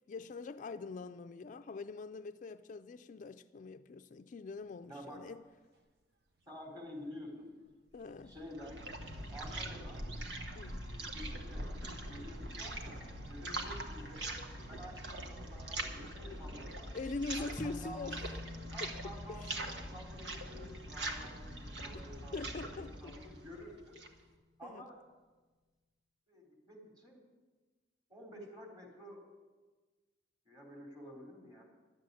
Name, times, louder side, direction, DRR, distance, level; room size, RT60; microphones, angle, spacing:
voice 1, 0.1-5.4 7.9-8.3 10.5-10.8 16.9-18.2 18.8-18.9 19.3-19.5 22.3-23.2 24.6-24.8, left 3 dB, 45° left, 0.4 m, -43 dB
voice 2, 4.9-5.2 6.5-7.5 8.3-8.8 9.3-10.1 10.5-11.7 12.1-14.3 14.7-16.9 17.4-18.1 18.7-22.4 22.7-24.0 24.6-25.0 26.3-27.2 28.1-29.2 30.5-31.6, equal, 25° right, 3.7 m, -50 dB
sound 1, 7.9-15.2 15.7-15.8, equal, 65° right, 1.0 m, -48 dB
sound 2, 8.2-24.2, right 1 dB, 85° right, 1.5 m, -43 dB
sound 3, 17.6-24.2, left 3 dB, ahead, 1.4 m, -52 dB
12.0 x 7.7 x 9.6 m
head